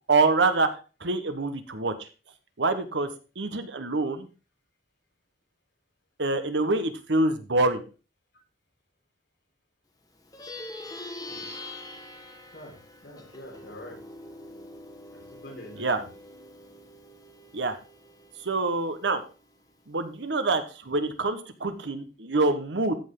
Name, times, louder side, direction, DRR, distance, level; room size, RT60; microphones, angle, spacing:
voice 1, 0.1-0.7 1.0-2.1 2.6-3.1 3.4-4.3 6.2-7.8 15.8-16.0 17.5-17.8 18.4-19.2 19.9-22.9, right 3 dB, 85° right, 9 dB, 1.2 m, -25 dB
Plucked string instrument, 10.2-19.9, left 2 dB, 20° left, 1.5 m, -44 dB
voice 2, 12.5-14.0 15.1-16.1, left 1 dB, 65° left, -1 dB, 4.2 m, -45 dB
14.0 x 5.6 x 3.8 m, 0.33 s
head